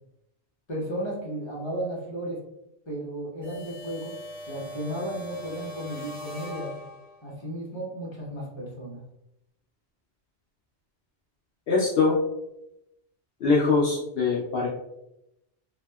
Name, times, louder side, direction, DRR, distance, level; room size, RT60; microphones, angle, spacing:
voice 1, 0.7-2.4 2.9-4.1 4.5-6.7 7.2-9.0, right 1 dB, 25° left, -6 dB, 0.9 m, -34 dB
sound 1, 3.4-7.3, left 1 dB, 35° right, 1.0 m, -41 dB
voice 2, 11.7-12.2 13.4-14.7, left 4 dB, 65° left, -5 dB, 0.7 m, -22 dB
2.7 x 2.6 x 2.2 m, 0.84 s
omnidirectional pair, 1.1 m